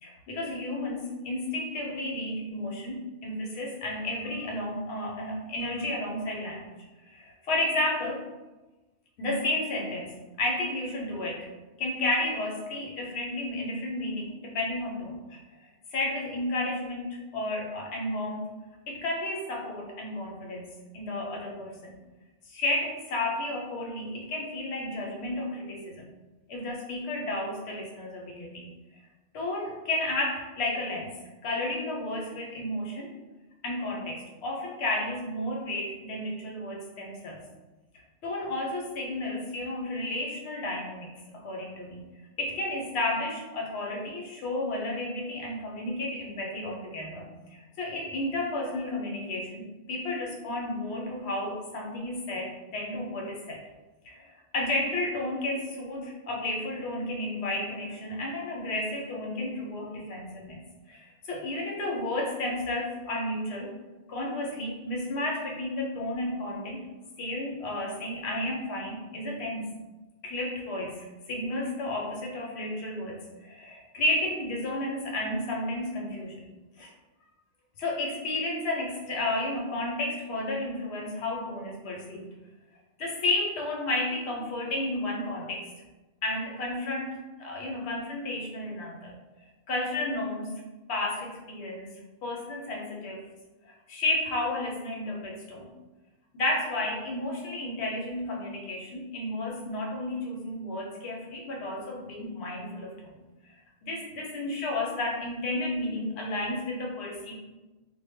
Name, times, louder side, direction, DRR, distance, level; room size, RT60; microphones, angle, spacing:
voice 1, 0.0-6.7 7.1-8.3 9.2-11.5 11.8-15.4 15.9-18.5 18.9-22.0 22.5-26.0 26.5-28.7 29.3-31.1 31.4-33.1 33.6-37.4 38.2-42.1 42.4-47.3 47.8-53.6 54.0-60.6 60.9-63.7 64.1-66.8 67.2-69.7 70.2-76.5 76.8-76.9 77.8-82.3 83.0-85.7 86.2-89.2 89.7-90.6 90.9-93.2 93.7-95.7 96.3-103.6 103.8-107.3, left 2 dB, 70° left, -1 dB, 0.9 m, -32 dB
2.1 x 2.0 x 3.4 m, 1.1 s
omnidirectional pair, 1.2 m